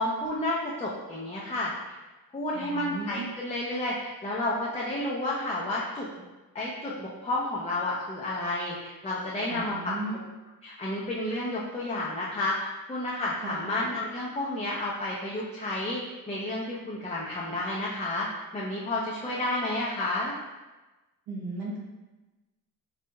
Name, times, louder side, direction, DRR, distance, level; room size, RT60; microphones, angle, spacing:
voice 1, 0.0-2.0 2.3-6.1 6.5-9.9 10.6-16.0 16.3-18.3 18.5-20.3, left 1 dB, 15° left, -5 dB, 0.6 m, -31 dB
voice 2, 2.5-3.3 9.5-10.2 13.4-13.7 21.3-21.8, right 3 dB, 85° right, -4 dB, 1.0 m, -36 dB
4.5 x 4.0 x 2.3 m, 1.1 s
cardioid pair, 100°, 36 cm